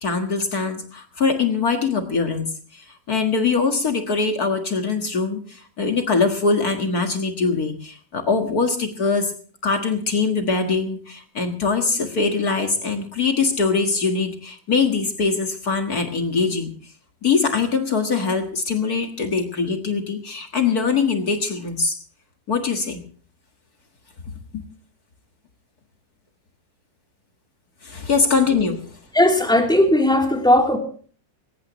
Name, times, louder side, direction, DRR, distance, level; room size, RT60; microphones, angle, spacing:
voice 1, 0.0-2.5 2.7-9.3 9.6-16.7 17.2-22.0 22.5-23.0 24.5-24.6 27.8-28.8, left 4 dB, 60° left, 5 dB, 2.2 m, -22 dB
voice 2, 29.1-30.8, left 1 dB, ahead, 2 dB, 3.2 m, -17 dB
21.5 x 19.0 x 3.1 m, 0.43 s
omnidirectional pair, 1.8 m